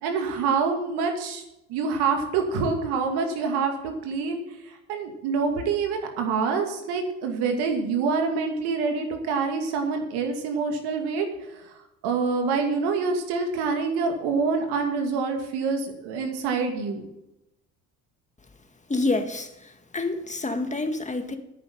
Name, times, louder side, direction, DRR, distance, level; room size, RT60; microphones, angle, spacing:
voice 1, 0.0-1.4 1.7-11.7 12.0-17.0, right 5 dB, 70° right, 4 dB, 2.5 m, -26 dB
voice 2, 18.9-21.4, left 2 dB, 15° left, 6 dB, 2.0 m, -28 dB
10.0 x 9.6 x 5.7 m, 0.87 s
hypercardioid pair, 60°, 40 cm